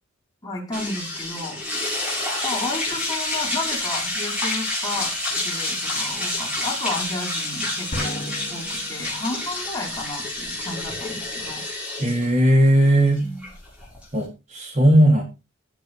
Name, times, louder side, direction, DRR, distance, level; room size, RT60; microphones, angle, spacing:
voice 1, 0.4-1.6 2.4-5.2 5.4-11.6 13.2-13.4, left 2 dB, 15° left, -1 dB, 4.9 m, -32 dB
sound 1, 0.7-14.2, left 2 dB, 5° right, 7.0 m, -28 dB
sound 2, 7.9-9.6, left 1 dB, 30° left, 3.8 m, -34 dB
voice 2, 12.0-13.2 14.1-15.2, right 1 dB, 30° right, 3 dB, 2.6 m, -17 dB
15.0 x 8.7 x 4.6 m, 0.28 s
head